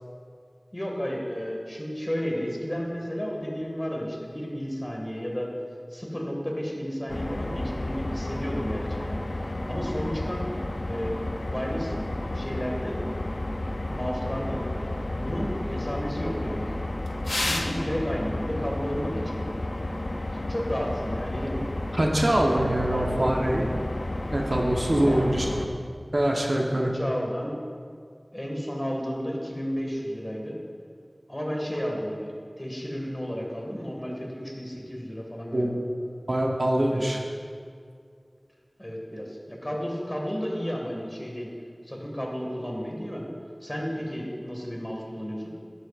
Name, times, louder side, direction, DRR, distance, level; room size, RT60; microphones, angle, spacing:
voice 1, 0.7-5.5 5.9-10.5 10.9-13.1 13.7-14.6 15.1-16.8 17.3-19.4 20.0-20.2 20.5-21.6 22.2-23.5 25.0-25.4 26.7-27.6 28.3-30.6 31.3-32.3 32.6-35.7 36.9-37.0 38.8-41.5 41.9-43.2 43.6-45.5, equal, 25° left, -1 dB, 1.8 m, -33 dB
sound 1, 7.1-25.7, left 1 dB, 75° left, 0.5 m, -31 dB
voice 2, 21.9-23.7 24.3-25.5 26.1-26.9 35.5-35.8 36.3-37.2, right 1 dB, 60° right, 0 dB, 1.0 m, -24 dB
12.0 x 9.3 x 2.5 m, 2.2 s
wide cardioid pair, 40°, 0 cm